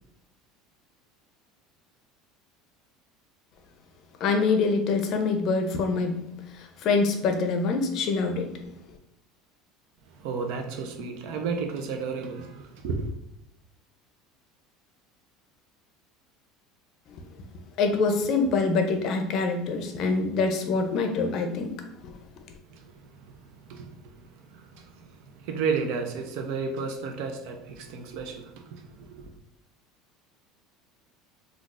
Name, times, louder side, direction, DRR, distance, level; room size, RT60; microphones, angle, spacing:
voice 1, 4.2-6.2 6.5-8.5 17.8-21.8 22.0-22.1, left 4 dB, 50° left, 0.5 m, -25 dB
voice 2, 10.1-13.1 22.7-29.3, right 5 dB, 70° right, 0.5 m, -33 dB
3.8 x 2.4 x 2.4 m
supercardioid pair, 125°, 0 cm